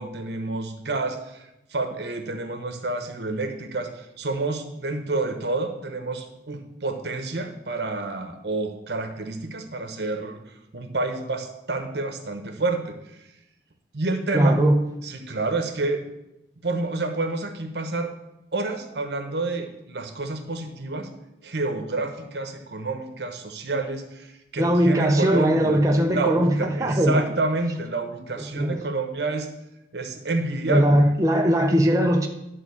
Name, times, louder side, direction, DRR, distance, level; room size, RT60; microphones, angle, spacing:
voice 1, 0.0-13.3 13.9-14.6 15.0-16.0 16.6-18.1 18.5-21.1 21.4-25.8 26.1-29.5 29.9-31.0, right 3 dB, 70° right, 6 dB, 1.0 m, -29 dB
voice 2, 14.3-14.8 24.6-27.3 28.5-28.8 30.7-32.3, equal, 20° right, 2 dB, 0.6 m, -20 dB
10.5 x 3.6 x 6.9 m, 0.90 s
head